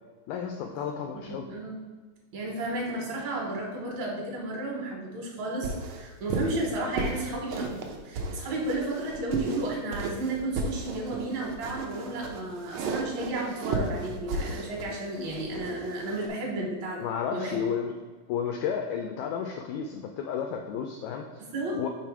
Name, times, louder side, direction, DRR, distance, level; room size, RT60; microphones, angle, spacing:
voice 1, 0.3-1.5 17.0-17.9 18.3-21.4 21.7-21.9, left 7 dB, 85° left, 4 dB, 1.7 m, -32 dB
voice 2, 1.2-1.8 2.3-17.1 17.3-17.6 21.5-21.8, right 2 dB, 65° right, -1 dB, 2.1 m, -33 dB
sound 1, 5.6-16.3, right 3 dB, 85° right, 1.4 m, -34 dB
5.8 x 4.7 x 4.6 m, 1.4 s
omnidirectional pair, 3.9 m